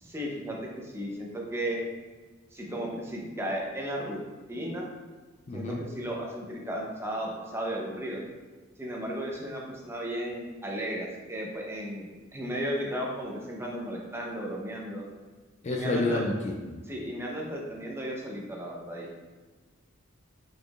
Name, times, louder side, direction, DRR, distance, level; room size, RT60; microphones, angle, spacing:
voice 1, 0.0-1.8 2.5-4.2 4.5-4.9 5.5-8.2 8.8-15.0 15.7-16.2 16.9-19.1, equal, 10° right, -2 dB, 0.6 m, -34 dB
voice 2, 5.5-5.8 15.6-16.8, left 2 dB, 35° left, 1 dB, 0.4 m, -30 dB
5.1 x 4.0 x 2.4 m, 1.3 s
head